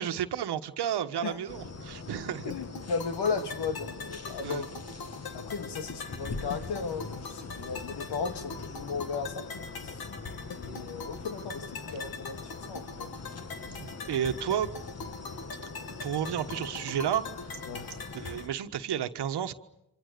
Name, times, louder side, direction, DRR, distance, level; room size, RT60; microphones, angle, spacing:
voice 1, 0.0-2.5 4.4-4.7 11.9-12.0 13.8-14.7 16.0-17.2 18.1-19.5, right 9 dB, 85° right, 9 dB, 1.4 m, -31 dB
sound 1, 1.5-18.5, left 4 dB, 40° left, 1.8 m, -43 dB
voice 2, 2.4-4.7 5.3-9.4 10.5-13.1 17.7-17.9, left 5 dB, 90° left, 7 dB, 2.3 m, -35 dB
sound 2, 2.5-18.5, left 4 dB, 65° left, 2.3 m, -43 dB
28.5 x 26.0 x 6.8 m, 0.87 s
cardioid pair, 75°, 39 cm